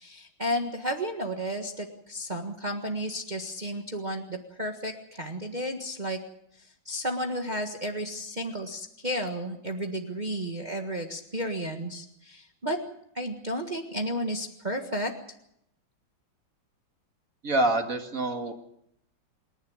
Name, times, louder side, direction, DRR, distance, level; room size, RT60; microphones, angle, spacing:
voice 1, 0.0-6.2 6.6-12.8 13.1-15.1, equal, 25° right, 3 dB, 1.6 m, -32 dB
voice 2, 17.4-18.5, right 2 dB, 45° right, 5 dB, 2.4 m, -26 dB
27.5 x 11.0 x 9.5 m, 0.76 s
omnidirectional pair, 2.1 m